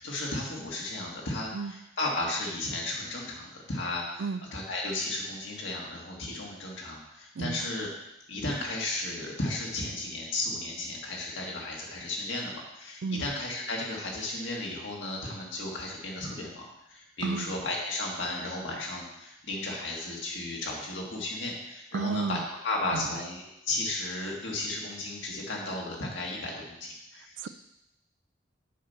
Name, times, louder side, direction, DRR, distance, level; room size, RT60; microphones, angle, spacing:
voice 1, 0.0-1.5 2.0-4.2 4.5-7.9 8.3-27.5, left 2 dB, 90° left, -2 dB, 1.9 m, -34 dB
voice 2, 7.3-7.7 13.0-13.2 17.2-17.6 21.9-22.5 22.9-23.2 27.1-27.5, right 5 dB, 80° right, 13 dB, 0.4 m, -33 dB
7.2 x 4.2 x 5.8 m, 0.87 s
head